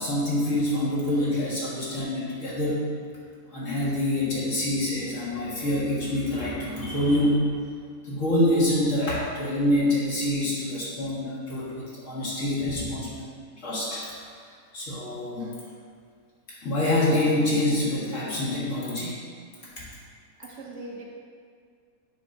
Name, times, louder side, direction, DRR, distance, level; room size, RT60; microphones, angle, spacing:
voice 1, 0.0-2.8 3.5-7.5 8.0-13.0 13.6-14.4 14.7-15.5 16.6-19.2 19.8-19.9, left 1 dB, 60° left, -7 dB, 1.9 m, -26 dB
voice 2, 20.4-21.0, right 2 dB, 60° right, -2 dB, 1.1 m, -37 dB
6.7 x 3.3 x 5.2 m, 2.1 s
omnidirectional pair, 1.5 m